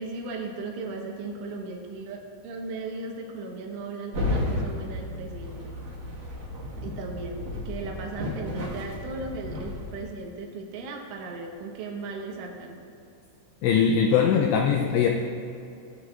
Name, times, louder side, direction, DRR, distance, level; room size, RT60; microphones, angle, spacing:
voice 1, 0.0-5.7 6.8-12.8, right 3 dB, 85° right, 0 dB, 3.6 m, -37 dB
sound 1, 4.1-10.0, left 1 dB, 60° right, 2.2 m, -33 dB
voice 2, 13.6-15.1, left 7 dB, 85° left, 3 dB, 2.4 m, -21 dB
17.5 x 8.4 x 2.4 m, 2.7 s
omnidirectional pair, 5.5 m